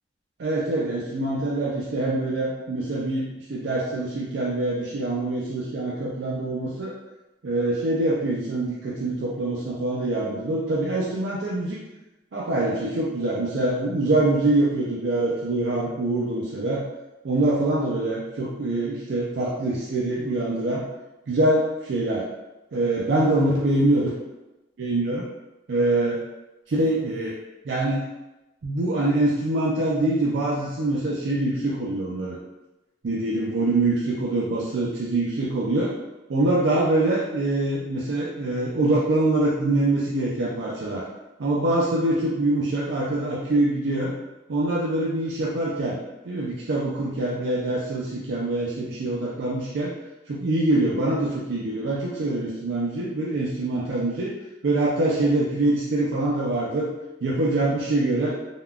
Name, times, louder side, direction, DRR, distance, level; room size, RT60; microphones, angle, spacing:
voice 1, 0.4-6.9 7.4-11.8 12.3-16.8 17.2-20.9 21.3-22.2 22.7-24.1 24.8-25.2 25.7-26.2 26.7-27.3 27.6-28.0 28.6-32.4 33.0-35.9 36.3-41.1 41.4-44.1 44.5-46.0 46.2-49.9 50.3-54.3 54.6-56.9 57.2-58.4, right 2 dB, 70° right, -5 dB, 0.4 m, -24 dB
3.5 x 2.2 x 2.3 m, 1.0 s
head